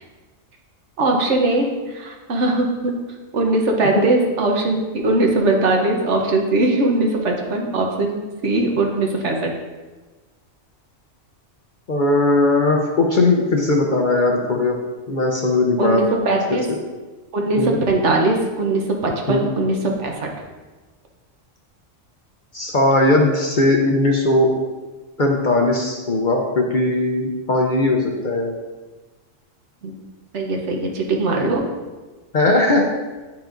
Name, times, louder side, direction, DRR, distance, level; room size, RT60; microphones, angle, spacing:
voice 1, 1.0-2.9 3.3-4.8 5.0-9.5 15.8-16.7 17.3-20.3 29.8-29.9 30.3-31.6, right 2 dB, 65° right, 1 dB, 1.2 m, -20 dB
voice 2, 11.9-14.8 15.1-16.0 16.5-16.8 17.6-17.8 19.3-19.4 22.5-24.5 25.2-28.5 32.3-32.8, left 2 dB, 45° left, 1 dB, 0.7 m, -18 dB
8.8 x 5.7 x 2.5 m, 1.3 s
omnidirectional pair, 1.3 m